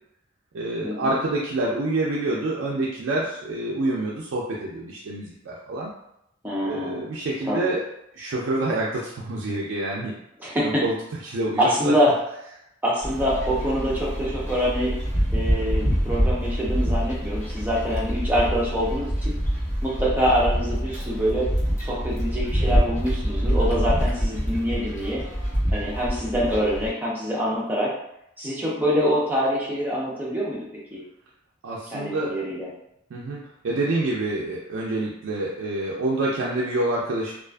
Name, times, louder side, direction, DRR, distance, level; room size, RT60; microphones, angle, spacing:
voice 1, 0.5-5.9 6.6-7.9 8.1-10.1 10.6-10.9 11.2-11.9 31.6-32.4 33.1-37.3, right 2 dB, 70° right, -4 dB, 0.4 m, -27 dB
voice 2, 6.4-7.1 7.5-7.7 10.4-10.8 11.6-12.1 12.8-14.9 15.3-19.3 19.8-21.5 21.8-25.2 25.7-27.9 28.4-31.0 31.9-32.7, equal, 10° right, -6 dB, 0.6 m, -25 dB
sound 1, 13.0-26.9, equal, 35° left, 0.9 m, -25 dB
2.4 x 2.4 x 2.3 m, 0.80 s
head